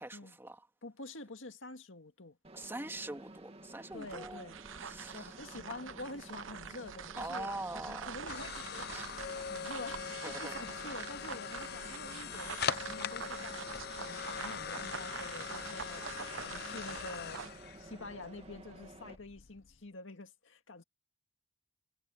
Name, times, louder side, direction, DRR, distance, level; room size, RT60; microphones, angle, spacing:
voice 1, 0.0-0.7 2.5-4.5 4.8-5.3 7.2-8.1 8.9-9.4 10.2-10.5, right 1 dB, 10° right, 2.8 m, -43 dB
voice 2, 0.8-2.4 3.9-4.6 5.1-13.7 14.0-16.1 16.4-20.8, left 2 dB, 80° left, 2.0 m, -47 dB
Mechanisms, 2.4-19.2, right 2 dB, 30° right, 2.1 m, -53 dB
sound 1, 3.9-17.6, right 6 dB, 85° right, 0.9 m, -45 dB
sound 2, 6.8-19.8, left 7 dB, 55° left, 0.8 m, -42 dB
head